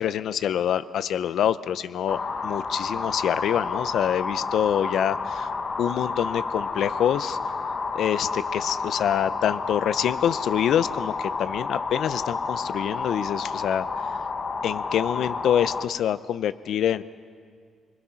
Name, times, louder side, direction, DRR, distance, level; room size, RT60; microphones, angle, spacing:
voice 1, 0.0-5.5 5.8-7.4 7.9-13.9 14.6-17.0, left 10 dB, 65° left, 14 dB, 0.6 m, -26 dB
sound 1, 2.1-15.9, left 4 dB, 30° left, 0.8 m, -30 dB
27.0 x 21.0 x 5.7 m, 2.1 s
cardioid pair, 170°, 0 cm